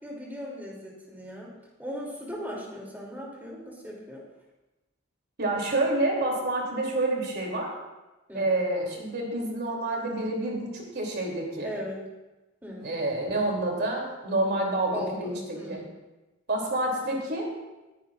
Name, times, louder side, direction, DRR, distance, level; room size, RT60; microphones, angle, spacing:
voice 1, 0.0-4.2 8.3-8.5 11.6-12.1 12.6-13.0 14.9-15.9, equal, 10° right, -4 dB, 3.0 m, -38 dB
voice 2, 5.4-7.7 8.3-11.7 12.8-15.8 16.5-17.5, right 2 dB, 55° right, -1 dB, 3.1 m, -28 dB
20.5 x 10.0 x 2.5 m, 1.1 s
head